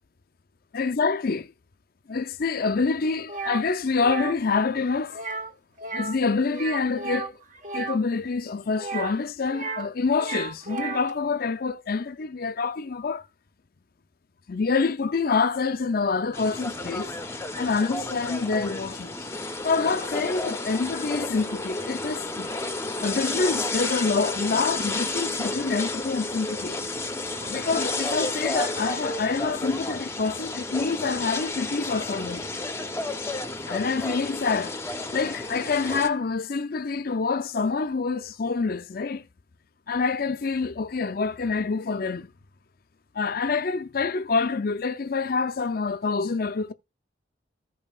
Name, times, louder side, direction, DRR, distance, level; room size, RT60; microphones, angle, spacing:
voice 1, 0.7-1.5 2.1-5.4 5.9-7.4 7.7-13.2 14.5-17.1 17.6-19.3 19.6-22.5 23.0-26.8 27.4-32.5 33.7-39.2 39.9-42.3 43.1-46.7, left 4 dB, 50° left, 0.5 m, -26 dB
sound 1, 3.3-3.6 4.0-4.3 5.1-5.5 5.8-6.2 6.5-8.0 8.7-9.9 10.1-11.1, right 4 dB, 45° right, 1.2 m, -33 dB
sound 2, 16.3-36.1, left 2 dB, 15° left, 0.8 m, -31 dB
15.0 x 5.4 x 2.4 m
head